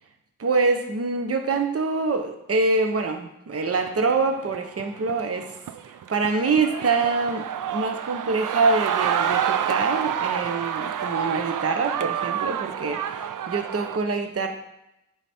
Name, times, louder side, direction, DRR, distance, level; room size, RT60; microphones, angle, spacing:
voice 1, 0.4-5.5 5.9-14.5, right 4 dB, 45° right, 5 dB, 0.9 m, -25 dB
sound 1, 3.7-14.0, right 8 dB, 75° right, 0.5 m, -28 dB
10.5 x 4.9 x 4.3 m, 0.87 s
wide cardioid pair, 95°, 32 cm